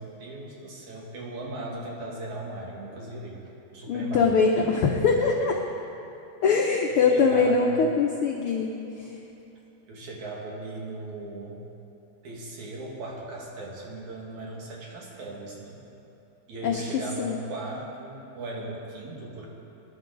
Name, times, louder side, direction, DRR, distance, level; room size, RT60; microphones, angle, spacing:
voice 1, 0.0-3.4 3.7-4.7 6.9-7.9 9.9-11.6 12.2-15.8 16.5-19.5, right 2 dB, 70° right, -3 dB, 3.4 m, -38 dB
voice 2, 3.9-5.6 6.4-8.7 9.0-9.1 16.6-16.8 17.2-17.4, left 5 dB, 80° left, 1 dB, 1.2 m, -22 dB
22.0 x 11.0 x 4.0 m, 2.9 s
omnidirectional pair, 3.5 m